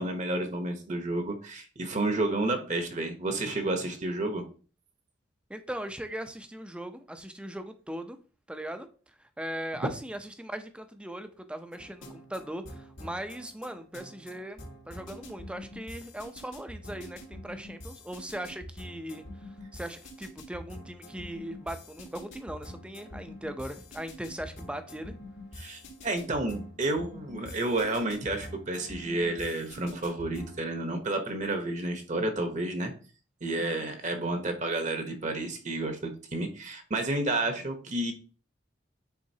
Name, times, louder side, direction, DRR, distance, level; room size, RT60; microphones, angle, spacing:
voice 1, 0.0-4.4 25.6-32.9 33.4-38.1, right 2 dB, 40° right, 1.0 m, -31 dB
voice 2, 5.5-8.2 8.5-8.9 9.4-19.3 19.7-25.1 33.5-33.9, right 1 dB, 5° right, 0.5 m, -39 dB
sound 1, 11.7-30.6, left 1 dB, 80° left, 2.1 m, -46 dB
9.4 x 3.7 x 2.8 m
head